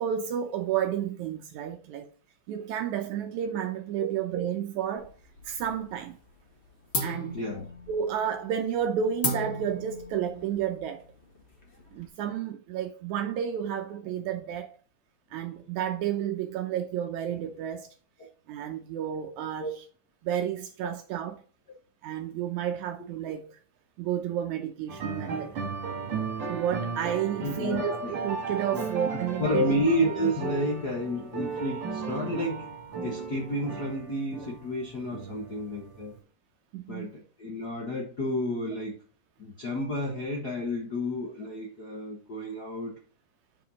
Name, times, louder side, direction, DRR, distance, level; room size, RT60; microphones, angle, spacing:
voice 1, 0.0-2.1 2.5-5.1 5.4-6.2 7.0-7.4 7.9-11.1 11.9-14.8 15.3-17.9 18.5-19.8 20.2-21.4 22.0-23.6 24.0-25.7 26.5-29.8 36.7-37.1, right 9 dB, 75° right, 1.8 m, -31 dB
sound 1, 5.0-5.9 6.2-6.6 6.9-12.1, left 1 dB, 30° left, 1.2 m, -36 dB
voice 2, 7.3-7.7 19.6-19.7 27.4-28.1 28.7-28.8 29.1-32.7 33.0-36.1 36.9-39.0 39.4-43.0, left 1 dB, 85° left, 0.8 m, -31 dB
sound 2, 24.9-36.2, right 5 dB, 45° right, 2.4 m, -35 dB
7.1 x 4.9 x 4.0 m
omnidirectional pair, 3.8 m